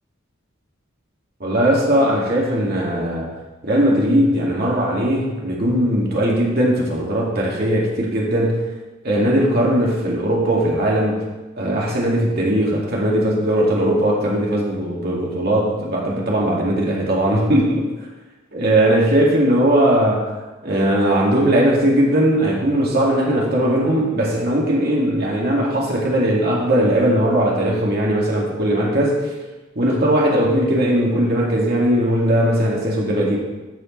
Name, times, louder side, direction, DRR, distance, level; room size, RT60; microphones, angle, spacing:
voice 1, 1.4-3.3 3.6-8.7 9.0-11.2 11.6-17.9 18.5-20.2 20.6-29.3 29.8-33.4, right 1 dB, 50° right, -3 dB, 2.2 m, -19 dB
12.5 x 6.6 x 3.2 m, 1.1 s
head